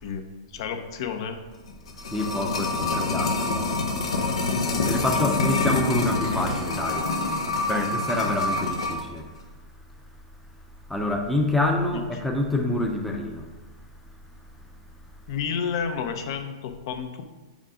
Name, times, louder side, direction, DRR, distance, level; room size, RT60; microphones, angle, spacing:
voice 1, 0.0-1.4 7.6-7.9 15.3-17.2, left 6 dB, 55° left, 0.8 m, -31 dB
sound 1, 1.6-9.1 9.4-9.5, left 3 dB, 80° left, 1.0 m, -26 dB
voice 2, 2.1-3.6 4.9-7.1 7.7-9.2 10.9-13.4, left 1 dB, 5° left, 0.6 m, -27 dB
5.2 x 5.1 x 4.9 m
hypercardioid pair, 140°, 3 cm